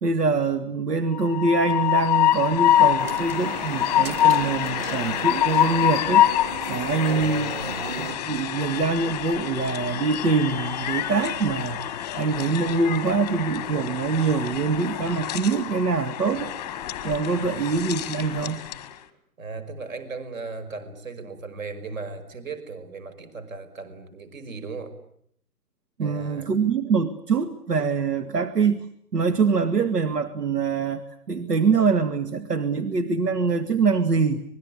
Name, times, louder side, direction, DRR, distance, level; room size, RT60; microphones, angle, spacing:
voice 1, 0.0-6.3 6.7-7.5 8.0-11.8 12.1-16.5 17.0-18.6 26.0-28.9 29.1-34.4, right 4 dB, 85° right, 9 dB, 2.2 m, -24 dB
Train, 1.1-18.9, left 12 dB, 10° left, 1.1 m, -25 dB
sound 1, 3.0-8.2, right 5 dB, 40° right, 2.3 m, -36 dB
voice 2, 7.0-7.9 17.3-17.7 19.4-24.9 26.0-26.5, right 4 dB, 60° right, 12 dB, 5.6 m, -37 dB
25.5 x 21.0 x 9.9 m, 0.69 s
hypercardioid pair, 165°, 46 cm